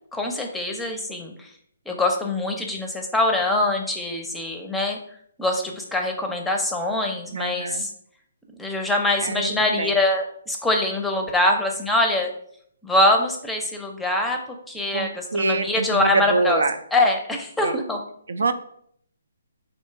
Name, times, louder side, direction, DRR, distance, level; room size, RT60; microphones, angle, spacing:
voice 1, 0.1-1.5 1.9-5.0 5.4-7.9 8.6-12.3 12.8-14.4 14.7-16.6 16.9-18.0, left 2 dB, 5° left, 3 dB, 0.6 m, -23 dB
voice 2, 7.3-7.9 9.2-10.0 14.9-16.8 17.6-17.8 18.3-18.5, right 3 dB, 80° right, 10 dB, 0.4 m, -25 dB
3.7 x 2.7 x 4.5 m, 0.66 s
hypercardioid pair, 150°, 0 cm